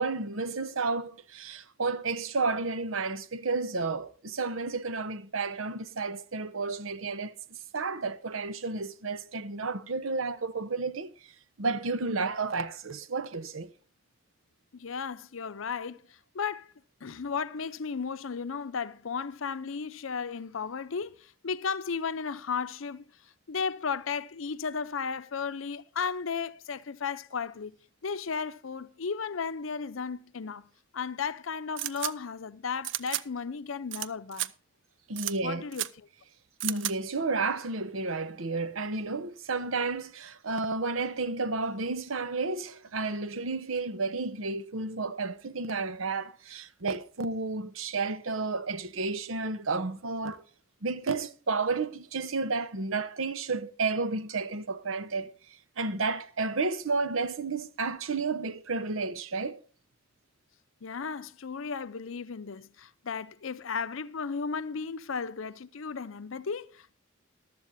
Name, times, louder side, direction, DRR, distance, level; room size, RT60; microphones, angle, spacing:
voice 1, 0.0-11.1 11.6-13.7 35.1-35.7 36.6-50.4 50.8-55.3 55.8-59.6, right 3 dB, 80° right, 0.9 m, -31 dB
voice 2, 14.7-16.7 17.0-23.0 23.5-27.8 28.0-30.7 30.9-34.5 35.4-36.1 36.6-36.8 60.8-67.0, left 5 dB, 75° left, 0.6 m, -35 dB
sound 1, 31.8-32.1 32.8-33.2 33.9-34.1 34.3-34.5 35.2-35.3 35.7-35.9 36.6-36.9, right 14 dB, 60° right, 0.5 m, -32 dB
15.0 x 12.0 x 2.7 m
head